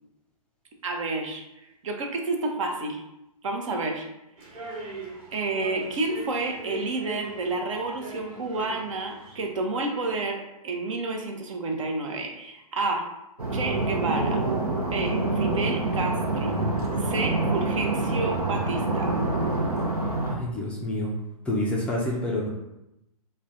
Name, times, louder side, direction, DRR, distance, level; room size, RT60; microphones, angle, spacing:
voice 1, 0.8-1.4 1.8-3.0 3.4-4.1 4.6-4.9 5.3-13.1 13.5-14.4 14.7-16.6 17.0-19.3, right 3 dB, 55° right, 3 dB, 0.7 m, -30 dB
sound 1, 4.4-9.5, right 2 dB, 30° right, 1.1 m, -40 dB
sound 2, 13.4-20.4, right 2 dB, 90° right, 0.8 m, -26 dB
voice 2, 20.3-21.1 21.5-22.5, left 1 dB, 5° left, -5 dB, 0.4 m, -28 dB
3.3 x 2.2 x 3.9 m, 0.89 s
figure-of-eight pair, 125°, 19 cm